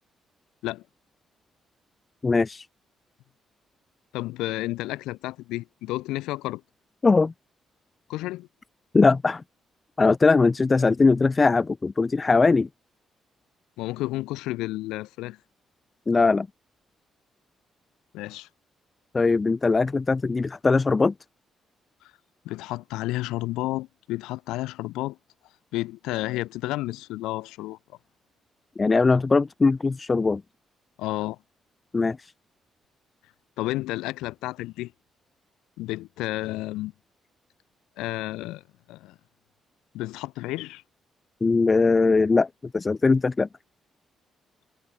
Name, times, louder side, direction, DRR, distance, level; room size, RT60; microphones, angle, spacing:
voice 1, 2.2-2.7 7.0-7.3 8.9-9.4 10.0-12.7 16.1-16.5 19.1-21.1 28.8-30.4 31.9-32.3 41.4-42.5 42.7-43.5, left 4 dB, 35° left, 1.4 m, -20 dB
voice 2, 4.1-6.6 8.1-8.5 13.8-15.4 18.1-18.5 22.4-25.2 25.7-27.8 31.0-31.4 33.6-34.9 35.8-36.9 38.0-38.6 38.9-39.2 39.9-40.8, left 18 dB, 85° left, 3.1 m, -31 dB
supercardioid pair, 55°, 0 cm